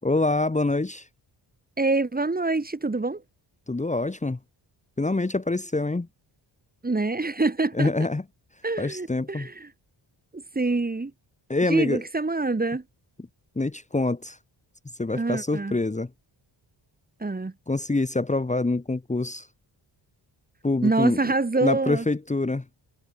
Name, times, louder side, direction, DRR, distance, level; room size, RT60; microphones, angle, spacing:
voice 1, 0.0-1.1 3.7-4.4 5.0-6.1 7.7-8.2 8.8-9.5 11.5-12.0 13.6-14.4 15.0-16.1 17.7-19.5 20.6-21.3 21.6-22.7, left 2 dB, 15° left, 1.9 m, -25 dB
voice 2, 1.8-3.2 6.8-7.9 8.6-9.7 10.3-11.1 11.7-12.8 15.1-15.8 17.2-17.5 20.8-22.1, right 3 dB, 20° right, 2.8 m, -26 dB
wide cardioid pair, 130°, 46 cm